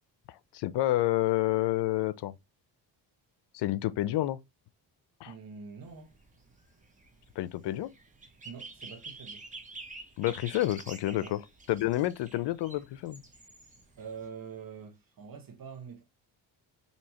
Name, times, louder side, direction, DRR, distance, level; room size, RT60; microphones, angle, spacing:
voice 1, 0.3-2.3 3.5-4.4 5.2-5.3 7.4-7.9 10.2-11.4 11.7-13.2, left 15 dB, 70° left, 0.6 m, -29 dB
voice 2, 5.2-6.1 8.4-9.4 11.2-11.4 14.0-16.0, right 6 dB, 50° right, 1.2 m, -45 dB
sound 1, 5.8-14.3, right 3 dB, 15° right, 1.2 m, -48 dB
4.6 x 2.8 x 2.9 m
cardioid pair, 80°, 44 cm